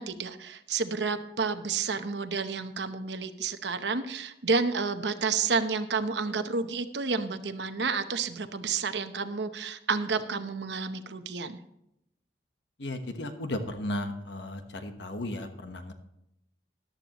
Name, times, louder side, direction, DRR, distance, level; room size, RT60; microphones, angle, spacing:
voice 1, 0.0-11.6, right 4 dB, 75° right, 9 dB, 0.9 m, -30 dB
voice 2, 12.8-15.9, left 1 dB, 80° left, 6 dB, 1.3 m, -35 dB
14.0 x 11.5 x 3.1 m, 0.82 s
head